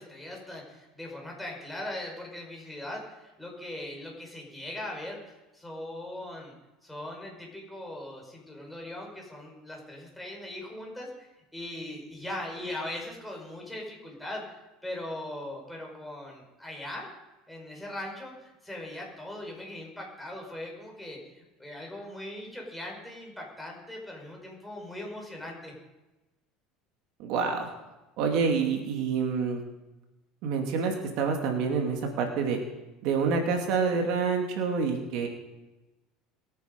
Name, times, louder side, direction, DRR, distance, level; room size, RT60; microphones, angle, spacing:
voice 1, 0.0-5.2 5.5-6.5 6.8-14.6 14.8-17.1 17.5-25.7, left 1 dB, 5° left, -1 dB, 5.1 m, -40 dB
voice 2, 27.2-27.7 28.2-29.6 30.4-32.6 33.0-35.3, right 5 dB, 65° right, 3 dB, 2.4 m, -27 dB
22.0 x 9.3 x 5.3 m, 1.1 s
supercardioid pair, 125°, 0 cm